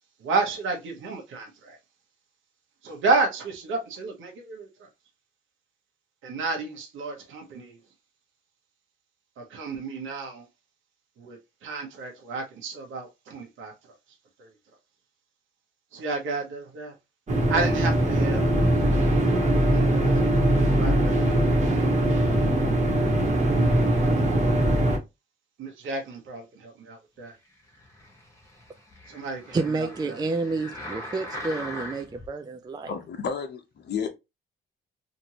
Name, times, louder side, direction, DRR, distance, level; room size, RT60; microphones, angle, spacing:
voice 1, 0.2-1.8 2.8-4.9 6.2-7.8 9.4-10.5 11.2-14.0 14.4-14.5 15.9-16.9 17.5-18.5 19.3-22.4 23.3-24.5 25.6-27.4 29.1-30.2, right 3 dB, 80° right, 1.1 m, -32 dB
sound 1, 17.3-25.0, right 1 dB, 35° right, 1.3 m, -21 dB
sound 2, 27.7-32.3 32.9-33.0, left 1 dB, 15° left, 1.2 m, -40 dB
voice 2, 29.5-32.9, right 3 dB, 20° right, 0.4 m, -29 dB
voice 3, 32.9-34.1, left 6 dB, 55° left, 0.9 m, -31 dB
2.9 x 2.6 x 2.9 m
cardioid pair, 90°, 20 cm